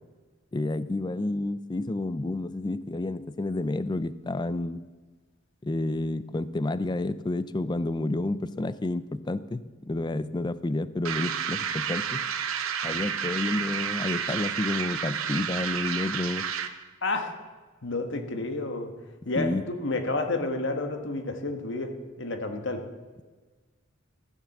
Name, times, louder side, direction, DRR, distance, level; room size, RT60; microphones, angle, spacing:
voice 1, 0.5-4.8 5.6-12.2 12.8-16.5 19.4-19.6, left 2 dB, 20° left, 15 dB, 0.4 m, -30 dB
sound 1, 11.1-16.8, right 7 dB, 85° right, 0.8 m, -31 dB
voice 2, 17.0-17.3 17.8-18.9 19.2-21.9 22.2-22.8, left 2 dB, 60° left, 6 dB, 1.4 m, -30 dB
14.5 x 7.3 x 7.2 m, 1.3 s
head